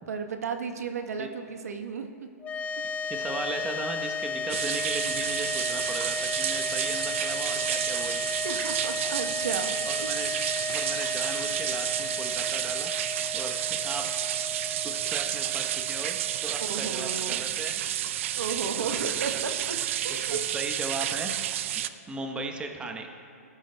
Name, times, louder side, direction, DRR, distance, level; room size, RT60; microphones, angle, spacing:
voice 1, 0.1-2.3 2.8-2.9 8.4-10.2 16.6-17.4 18.4-19.8 20.0-20.4, right 5 dB, 75° right, 6 dB, 1.0 m, -34 dB
sound 1, 2.4-16.8, left 3 dB, 15° left, 0.3 m, -34 dB
voice 2, 3.0-8.3 9.9-10.3 10.7-12.9 13.3-14.1 14.8-16.2 16.4-17.8 18.7-19.4 20.3-21.3 22.1-23.1, right 3 dB, 10° right, 4 dB, 0.9 m, -37 dB
sound 2, 4.5-21.9, right 12 dB, 55° right, 0.4 m, -30 dB
17.0 x 9.2 x 2.2 m, 2.5 s
hypercardioid pair, 130°, 8 cm